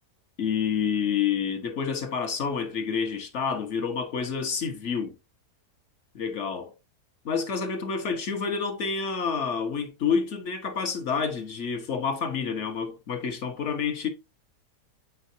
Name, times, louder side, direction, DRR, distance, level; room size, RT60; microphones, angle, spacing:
voice 1, 0.4-5.1 6.1-6.7 7.2-14.1, left 6 dB, 50° left, 1.3 m, -28 dB
8.3 x 4.6 x 2.7 m
omnidirectional pair, 1.8 m